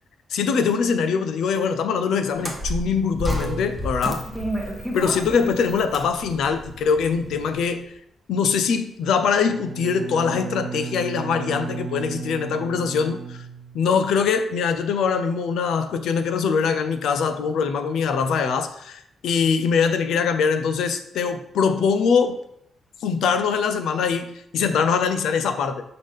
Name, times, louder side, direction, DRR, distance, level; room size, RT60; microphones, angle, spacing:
voice 1, 0.3-4.2 4.9-7.9 8.3-13.2 13.7-22.4 23.0-25.8, left 6 dB, 85° left, 9 dB, 0.6 m, -22 dB
sound 1, 2.3-7.6, equal, ahead, 0.8 m, -31 dB
Bowed string instrument, 9.5-14.2, right 6 dB, 55° right, 0.6 m, -35 dB
5.8 x 5.2 x 3.6 m, 0.73 s
wide cardioid pair, 170°, 0 cm